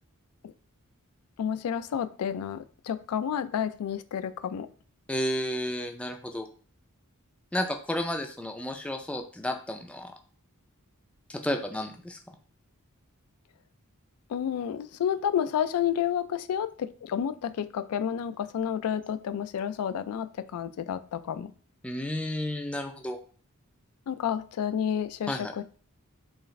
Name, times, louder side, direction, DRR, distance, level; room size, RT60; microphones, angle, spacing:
voice 1, 1.4-4.7 14.3-21.5 24.1-25.6, left 8 dB, 80° left, 12 dB, 0.3 m, -30 dB
voice 2, 5.1-6.5 7.5-10.1 11.3-12.2 21.8-23.2 25.3-25.5, left 1 dB, 5° left, 4 dB, 0.4 m, -32 dB
4.7 x 2.4 x 3.1 m, 0.41 s
head